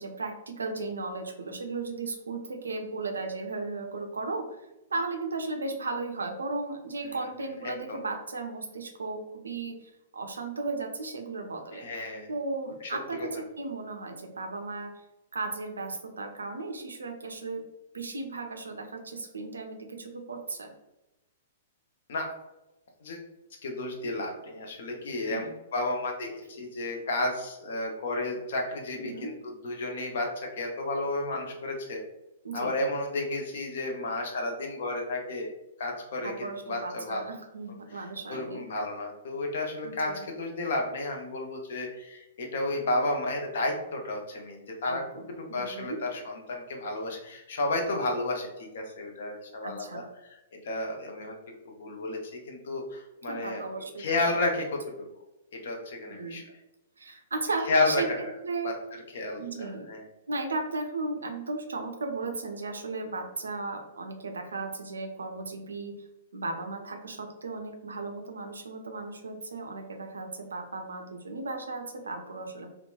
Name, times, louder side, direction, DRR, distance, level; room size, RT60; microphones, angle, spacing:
voice 1, 0.0-4.5 4.9-11.9 12.3-14.9 15.3-17.6 17.9-20.7 25.3-25.5 29.0-29.3 32.4-32.7 36.2-38.7 39.8-40.3 44.8-46.0 49.6-50.0 53.3-54.0 56.1-56.4 57.0-58.8 59.4-59.9 60.3-66.0 66.3-72.7, right 3 dB, 75° right, 4 dB, 0.4 m, -35 dB
voice 2, 7.6-8.0 11.7-12.3 12.8-13.3 22.1-22.3 23.0-23.2 23.6-29.3 29.6-32.0 32.5-35.5 35.8-37.2 37.9-45.0 45.4-51.3 51.6-54.8 55.5-56.4 57.7-58.2 58.6-58.7 59.1-60.0, left 2 dB, 60° left, 2 dB, 0.5 m, -32 dB
2.8 x 2.1 x 2.2 m, 0.93 s
figure-of-eight pair, 110°, 0 cm